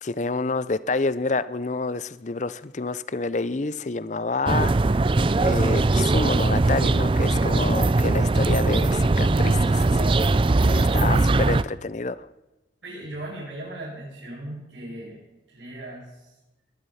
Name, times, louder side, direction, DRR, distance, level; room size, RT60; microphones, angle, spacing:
voice 1, 0.0-10.2 10.6-12.3, left 3 dB, 40° left, 17 dB, 0.6 m, -28 dB
sound 1, 4.5-11.6, right 2 dB, 30° right, 0.4 m, -20 dB
voice 2, 12.8-15.2 15.5-16.3, right 1 dB, 80° right, -9 dB, 7.8 m, -38 dB
21.0 x 11.0 x 5.7 m, 1.0 s
head